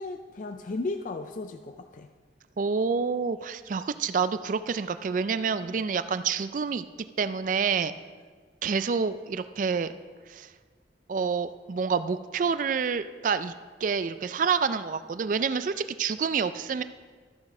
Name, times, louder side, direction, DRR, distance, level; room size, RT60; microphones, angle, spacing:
voice 1, 0.0-2.1, left 3 dB, 45° left, 7 dB, 0.4 m, -35 dB
voice 2, 2.6-6.8 7.2-7.9 8.6-9.9 10.3-10.5 11.1-13.5 13.8-16.8, right 5 dB, 45° right, 12 dB, 0.3 m, -28 dB
14.0 x 6.1 x 4.9 m, 1.5 s
head